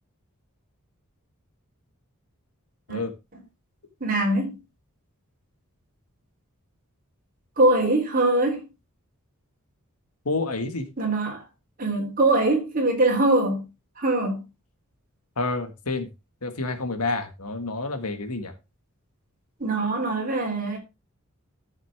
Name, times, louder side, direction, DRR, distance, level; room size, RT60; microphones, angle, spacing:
voice 1, 4.0-4.6 7.6-8.6 11.0-11.4 11.8-13.6 14.0-14.4 19.6-20.8, right 2 dB, 40° right, 3.5 m, -22 dB
voice 2, 10.3-10.9 15.4-16.1 16.4-18.6, left 3 dB, 90° left, 1.9 m, -29 dB
14.0 x 6.6 x 3.5 m
head